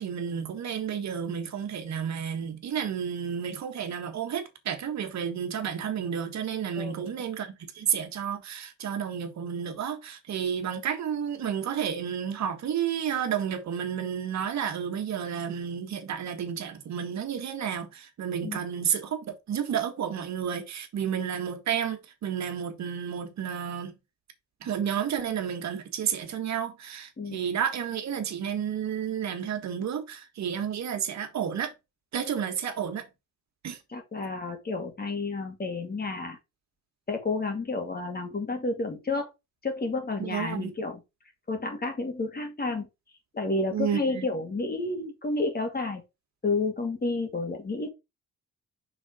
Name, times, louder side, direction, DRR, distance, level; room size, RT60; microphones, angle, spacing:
voice 1, 0.0-23.9 24.6-31.7 32.1-33.0 33.6-33.8 40.2-40.7 43.7-44.3, right 8 dB, 65° right, 1.5 m, -31 dB
voice 2, 6.8-7.1 18.4-18.6 27.2-27.5 33.9-36.4 37.1-39.3 39.6-41.0 41.5-42.9 43.3-46.0 46.4-47.9, left 3 dB, 30° left, 2.3 m, -30 dB
5.6 x 3.8 x 5.0 m
cardioid pair, 90°, 30 cm